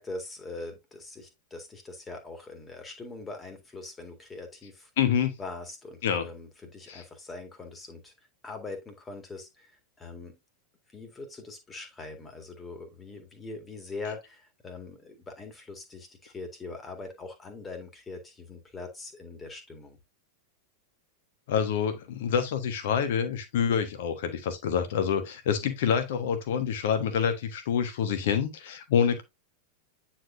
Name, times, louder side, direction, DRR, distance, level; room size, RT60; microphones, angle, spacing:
voice 1, 0.0-4.9 5.4-8.1 8.4-9.7 10.0-10.4 10.9-20.0, left 3 dB, 15° left, 2.0 m, -42 dB
voice 2, 5.0-5.3 6.0-6.3 6.9-7.0 21.5-29.2, left 7 dB, 55° left, 1.3 m, -27 dB
9.2 x 4.4 x 2.7 m
figure-of-eight pair, 90°, 0 cm